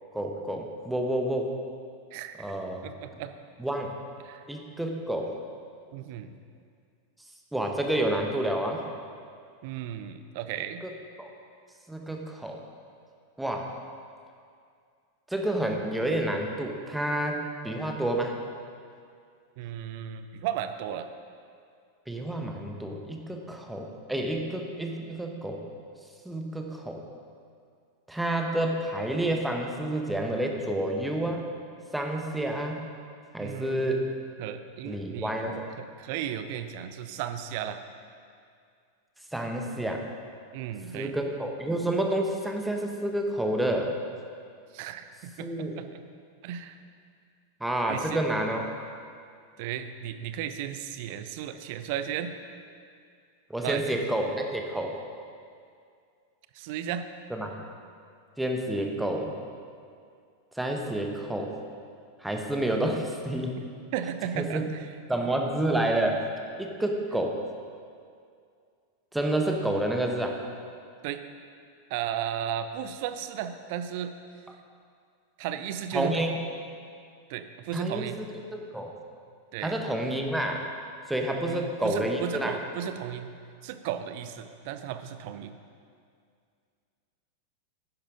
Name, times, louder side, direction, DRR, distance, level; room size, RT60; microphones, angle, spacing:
voice 1, 0.1-1.5 2.4-2.9 3.6-3.9 4.5-5.4 7.5-8.8 10.8-10.9 11.2-11.3 11.9-12.6 13.4-13.7 15.3-18.3 22.1-25.6 26.2-27.0 28.1-31.4 31.9-32.9 33.3-34.0 34.8-35.7 39.3-40.1 40.9-43.9 45.4-45.8 47.6-48.7 53.5-54.9 57.3-57.6 58.4-59.3 60.6-61.5 62.2-63.6 64.3-64.7 65.1-66.2 66.6-67.4 69.1-70.4 75.9-76.4 77.7-78.1 78.7-78.9 79.6-80.7 81.1-82.6, right 1 dB, 5° right, 2 dB, 1.1 m, -29 dB
voice 2, 2.8-3.3 4.2-4.4 5.9-6.3 9.6-10.8 19.6-21.1 33.4-34.1 34.4-35.3 35.8-37.8 40.5-41.1 44.7-46.0 46.4-46.8 47.9-48.2 49.6-52.3 53.6-54.0 56.5-57.1 63.9-64.9 71.0-71.2 71.9-74.1 75.4-76.3 77.3-78.2 79.5-79.8 81.5-83.3 83.6-85.5, right 9 dB, 50° right, 10 dB, 0.6 m, -35 dB
11.5 x 10.0 x 3.8 m, 2.3 s
figure-of-eight pair, 90°, 0 cm